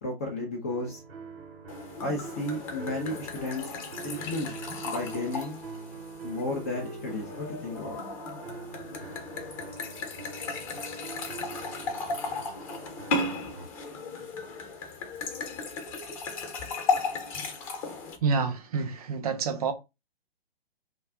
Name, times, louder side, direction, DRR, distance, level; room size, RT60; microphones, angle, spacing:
voice 1, 0.0-1.0 2.0-3.7 4.0-4.6 4.8-5.6 6.2-8.0, left 2 dB, 15° left, 0.3 m, -33 dB
sound 1, 0.7-13.7, right 4 dB, 70° right, 0.8 m, -44 dB
sound 2, 1.7-18.2, left 3 dB, 35° left, 0.8 m, -35 dB
voice 2, 18.2-19.7, right 5 dB, 40° right, 0.5 m, -28 dB
2.3 x 2.2 x 3.5 m
figure-of-eight pair, 120°, 30 cm